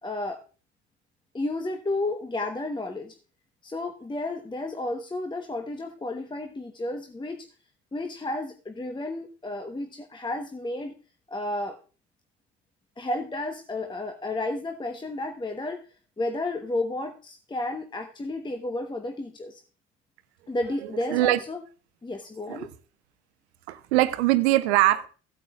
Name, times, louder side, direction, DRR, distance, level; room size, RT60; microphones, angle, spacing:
voice 1, 0.0-0.4 1.3-3.2 3.6-7.5 7.9-11.0 11.3-11.8 13.0-15.8 16.2-19.6 20.5-21.6 22.0-22.7, left 2 dB, 15° left, 1.0 m, -32 dB
voice 2, 23.7-25.1, right 16 dB, 70° right, 0.8 m, -22 dB
16.0 x 8.7 x 2.4 m
figure-of-eight pair, 55°, 34 cm